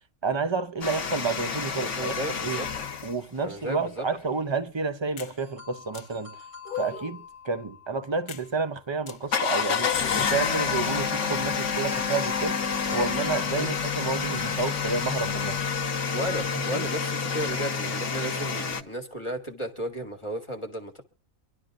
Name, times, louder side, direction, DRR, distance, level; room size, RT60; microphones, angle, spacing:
voice 1, 0.2-2.6 3.0-6.3 6.8-12.6 12.9-15.6 16.7-16.8, right 4 dB, 35° right, 0.5 m, -30 dB
sound 1, 0.8-3.1 9.2-18.8, left 6 dB, 55° left, 1.6 m, -28 dB
voice 2, 1.8-2.7 3.4-4.0 13.6-13.7 16.1-21.0, equal, 20° left, 1.7 m, -34 dB
sound 2, 5.2-5.4 5.9-6.1 6.6-7.2 8.3-8.5 9.1-9.2 9.8-10.3, left 8 dB, 90° left, 1.4 m, -36 dB
sound 3, 5.4-9.3 11.9-15.3, left 5 dB, 60° right, 5.7 m, -46 dB
25.5 x 12.0 x 2.5 m
omnidirectional pair, 1.5 m